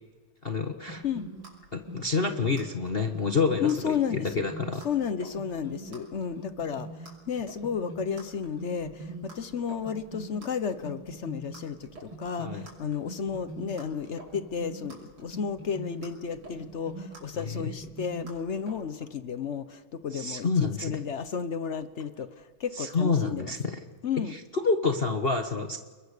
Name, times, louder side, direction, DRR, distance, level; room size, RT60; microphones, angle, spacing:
voice 1, 0.4-1.0 1.7-4.8 12.4-12.6 17.4-17.7 20.1-21.0 22.7-23.8 24.3-25.8, left 4 dB, 40° left, 5 dB, 0.9 m, -28 dB
sound 1, 0.9-18.8, right 2 dB, 75° right, 7.0 m, -42 dB
voice 2, 3.6-4.3 4.8-6.9 7.3-22.3 22.6-23.5 24.0-24.4, left 7 dB, 60° left, 12 dB, 0.7 m, -32 dB
30.0 x 22.0 x 6.7 m, 1.4 s
omnidirectional pair, 2.4 m